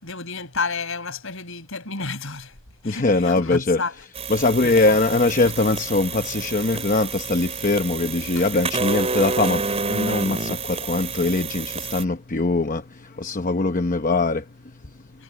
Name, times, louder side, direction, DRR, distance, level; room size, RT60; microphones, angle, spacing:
voice 1, 0.0-2.5 2.8-3.9 4.6-5.0, left 4 dB, 65° left, 6.6 m, -30 dB
voice 2, 2.8-3.8 4.3-15.0, left 3 dB, 40° left, 0.9 m, -22 dB
sound 1, 4.1-12.0, right 4 dB, 30° right, 3.5 m, -29 dB
head